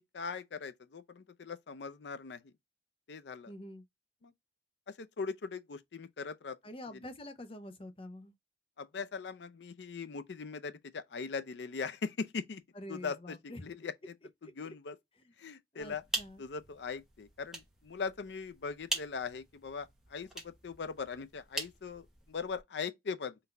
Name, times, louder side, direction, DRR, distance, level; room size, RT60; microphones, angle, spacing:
voice 1, 0.0-2.5 3.1-3.5 4.2-4.3 4.9-6.6 6.9-7.1 8.8-12.6 12.9-13.4 13.6-14.2 14.4-15.0 15.4-16.0 16.4-23.4, left 5 dB, 70° left, 0.5 m, -40 dB
voice 2, 3.5-3.8 6.6-8.3 12.8-13.6 15.8-16.4, left 1 dB, 30° left, 0.7 m, -46 dB
sound 1, 15.8-22.6, right 2 dB, 5° right, 1.0 m, -43 dB
3.8 x 2.6 x 3.3 m
head